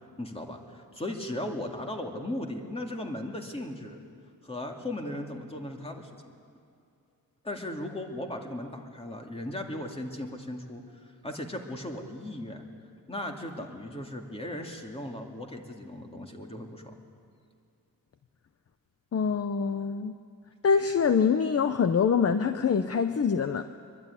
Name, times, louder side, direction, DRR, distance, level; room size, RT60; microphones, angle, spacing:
voice 1, 0.2-4.0 4.4-6.3 7.4-12.7 13.1-16.9, left 1 dB, 15° left, 2 dB, 2.6 m, -37 dB
voice 2, 19.1-20.1 20.6-23.6, left 6 dB, 40° left, 9 dB, 0.8 m, -25 dB
24.5 x 24.0 x 9.9 m, 2.5 s
wide cardioid pair, 165°, 37 cm